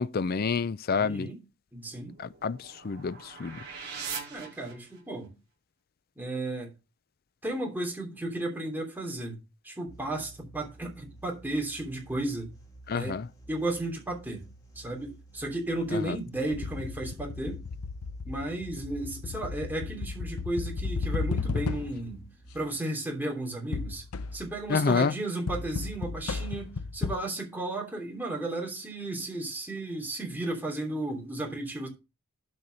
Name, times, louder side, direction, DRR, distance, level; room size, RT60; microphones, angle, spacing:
voice 1, 0.0-1.3 2.2-3.6 12.9-13.3 15.9-16.2 24.7-25.1, left 5 dB, 45° left, 0.4 m, -28 dB
voice 2, 1.0-1.4 1.7-2.2 4.3-5.3 6.2-6.7 7.4-12.5 12.9-13.2 13.5-14.4 14.7-17.6 18.2-22.2 22.5-24.0 24.3-31.9, right 2 dB, 10° right, 2.9 m, -34 dB
sound 1, 1.8-5.3, right 6 dB, 50° right, 5.6 m, -42 dB
sound 2, 9.9-22.7, right 1 dB, 15° left, 2.4 m, -52 dB
sound 3, 16.5-22.2 23.7-24.6 25.5-27.2, left 4 dB, 90° left, 0.6 m, -34 dB
12.5 x 4.6 x 5.2 m
head